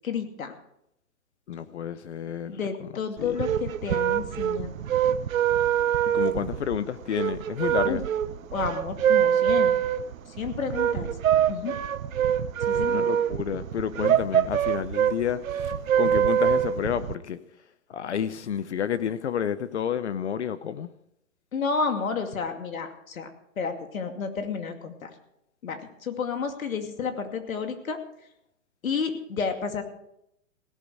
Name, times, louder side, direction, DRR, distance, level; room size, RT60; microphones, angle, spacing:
voice 1, 0.0-0.5 2.5-4.7 7.8-8.0 8.5-9.8 10.3-11.1 11.5-11.8 12.7-13.1 21.5-23.3 23.6-25.1 25.6-28.0 28.8-29.8, left 5 dB, 85° left, 2.5 m, -31 dB
voice 2, 1.5-2.9 3.2-3.4 6.1-8.0 12.7-15.4 16.0-17.4 17.9-20.9, left 8 dB, 55° left, 0.9 m, -30 dB
sound 1, 3.2-17.1, right 9 dB, 85° right, 0.9 m, -25 dB
17.0 x 12.5 x 4.9 m
hypercardioid pair, 175°, 40 cm